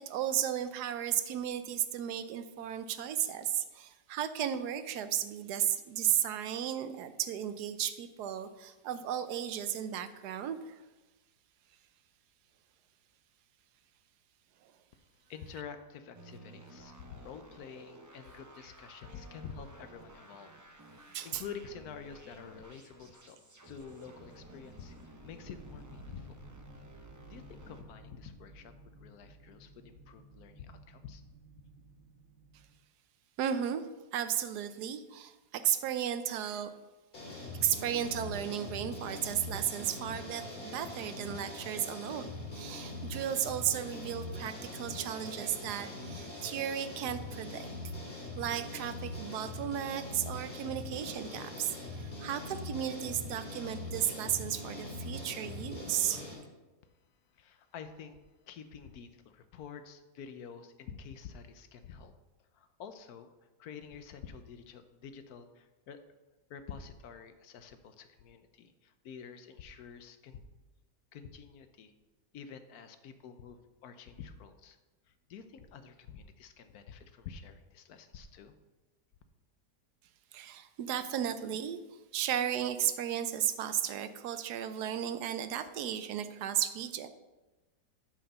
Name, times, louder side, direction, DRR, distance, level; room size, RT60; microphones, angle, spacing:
voice 1, 0.1-10.8 21.1-21.4 33.4-33.8 34.1-36.7 37.6-47.7 48.4-56.2 80.3-81.8 82.1-87.1, right 10 dB, 75° right, 11 dB, 1.2 m, -34 dB
voice 2, 15.3-20.5 20.8-23.4 23.6-26.4 27.3-31.2 57.3-58.2 58.5-62.1 62.5-63.3 63.6-66.0 66.5-70.4 71.1-71.9 72.3-74.8 75.1-78.5, left 6 dB, 65° left, 9 dB, 1.2 m, -48 dB
sound 1, 16.1-27.8, right 1 dB, 30° right, 0.3 m, -54 dB
sound 2, 25.4-32.7, right 1 dB, 90° right, 1.7 m, -55 dB
sound 3, 37.1-56.3, left 2 dB, 30° left, 2.7 m, -42 dB
8.9 x 5.0 x 6.7 m, 1.1 s
omnidirectional pair, 1.8 m